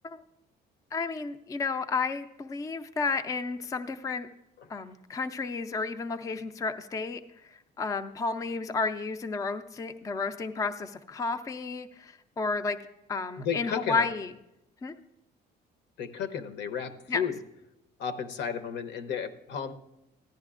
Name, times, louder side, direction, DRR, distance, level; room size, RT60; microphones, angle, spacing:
voice 1, 0.9-4.3 4.7-7.2 7.5-12.8 13.1-14.3 14.8-15.0 17.1-17.2, left 4 dB, 20° left, 8 dB, 0.3 m, -32 dB
voice 2, 13.4-14.1 16.0-17.4 18.0-19.7, left 7 dB, 80° left, 10 dB, 0.8 m, -33 dB
14.5 x 10.5 x 2.4 m, 0.88 s
cardioid pair, 155°, 18 cm